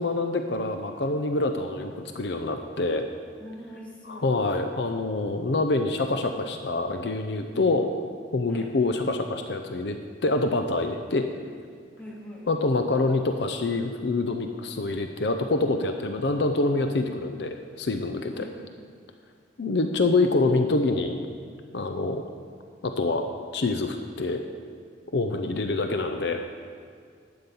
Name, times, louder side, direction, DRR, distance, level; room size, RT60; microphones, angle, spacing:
voice 1, 0.0-3.0 4.1-7.9 8.3-10.0 10.2-11.3 12.5-18.5 19.6-21.3 21.7-22.2 22.8-23.3 23.5-24.4 25.1-26.4, left 2 dB, 65° left, 6 dB, 0.6 m, -26 dB
voice 2, 3.4-4.3 7.4-7.6 8.5-8.8 12.0-12.5 18.3-18.6, equal, 5° left, -4 dB, 1.9 m, -42 dB
12.0 x 8.6 x 5.4 m, 2.1 s
head